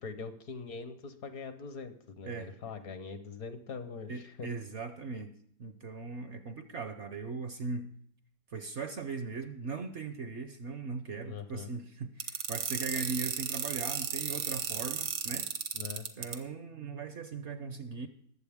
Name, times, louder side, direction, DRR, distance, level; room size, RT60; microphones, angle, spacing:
voice 1, 0.0-4.5 11.2-11.7 15.7-16.1, left 5 dB, 65° left, 9 dB, 1.4 m, -42 dB
voice 2, 4.1-5.3 5.6-7.9 8.5-15.5 16.2-18.1, right 4 dB, 60° right, 9 dB, 0.8 m, -39 dB
sound 1, 12.2-16.3, right 8 dB, 75° right, 1.6 m, -34 dB
21.5 x 7.5 x 3.5 m, 0.64 s
omnidirectional pair, 1.7 m